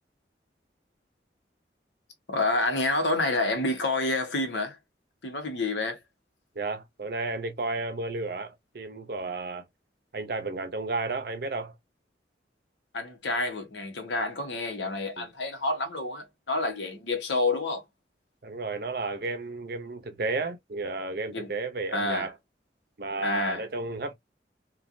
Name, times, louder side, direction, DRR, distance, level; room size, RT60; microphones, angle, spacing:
voice 1, 2.3-4.8 5.2-6.0 12.9-17.8 21.3-21.5 21.9-22.3 23.2-23.6, left 2 dB, 80° left, 1.1 m, -28 dB
voice 2, 6.6-9.6 10.1-11.7 15.2-15.3 18.4-22.3 23.0-24.1, right 3 dB, 55° right, 0.6 m, -32 dB
3.2 x 2.3 x 2.5 m
head